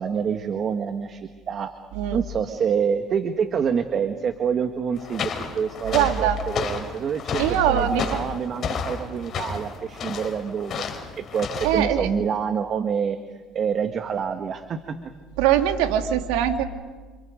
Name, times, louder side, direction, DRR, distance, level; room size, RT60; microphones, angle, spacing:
voice 1, 0.0-1.7 2.1-10.8 11.2-13.2 13.5-14.9, right 7 dB, 45° right, 7 dB, 1.7 m, -27 dB
voice 2, 1.9-2.3 5.9-6.4 7.4-8.2 11.6-12.1 15.4-16.6, right 9 dB, 80° right, 5 dB, 2.4 m, -22 dB
sound 1, 5.0-11.9, left 6 dB, 45° left, 4.5 m, -32 dB
29.0 x 28.0 x 5.2 m, 1.4 s
supercardioid pair, 90°, 0 cm